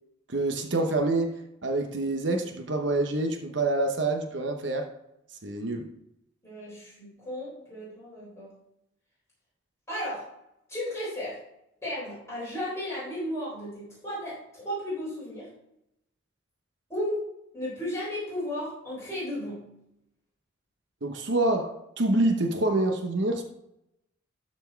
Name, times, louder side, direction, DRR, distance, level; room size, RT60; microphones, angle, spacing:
voice 1, 0.3-4.9 5.4-5.9 21.0-23.4, right 2 dB, 65° right, 4 dB, 1.0 m, -27 dB
voice 2, 6.4-8.6 9.9-10.3 10.7-11.4 11.8-15.5 16.9-17.3 17.5-19.8, equal, 15° left, -8 dB, 4.0 m, -34 dB
12.5 x 4.4 x 4.6 m, 0.82 s
head